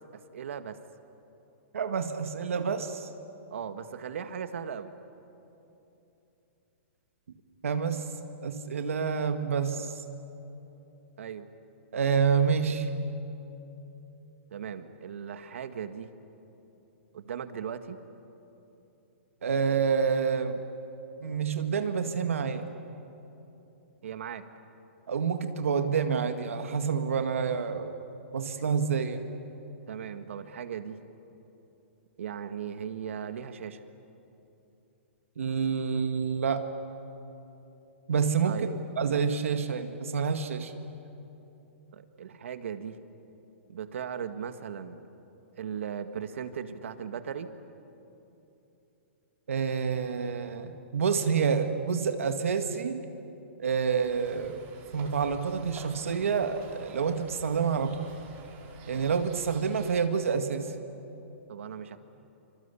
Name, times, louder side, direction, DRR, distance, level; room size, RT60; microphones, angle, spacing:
voice 1, 0.1-0.8 3.5-4.9 11.2-11.5 14.5-16.1 17.1-18.0 24.0-24.5 29.9-31.0 32.2-33.8 38.4-38.8 41.9-43.0 43.7-45.0 45.6-47.5 61.5-62.0, right 8 dB, 70° right, 9 dB, 1.9 m, -38 dB
voice 2, 1.7-3.1 7.6-8.1 8.4-9.9 11.9-12.9 19.4-20.6 21.2-22.7 25.1-27.9 28.3-29.3 35.4-36.7 38.1-38.7 39.0-40.7 49.5-53.1 53.6-54.6 54.9-58.1 58.9-60.7, right 6 dB, 85° right, 7 dB, 2.0 m, -28 dB
sound 1, 54.0-60.0, right 4 dB, 25° right, 4.3 m, -50 dB
27.5 x 26.0 x 8.5 m, 3.0 s
hypercardioid pair, 155°, 7 cm